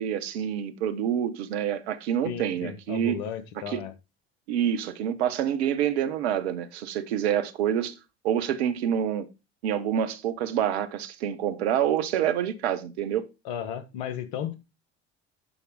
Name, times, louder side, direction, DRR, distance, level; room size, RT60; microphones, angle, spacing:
voice 1, 0.0-3.2 3.7-3.8 4.5-7.9 8.2-9.3 9.6-13.3, right 9 dB, 70° right, 1.2 m, -27 dB
voice 2, 2.2-3.9 13.4-14.6, left 8 dB, 70° left, 1.6 m, -34 dB
11.5 x 5.0 x 4.8 m
figure-of-eight pair, 60°, 33 cm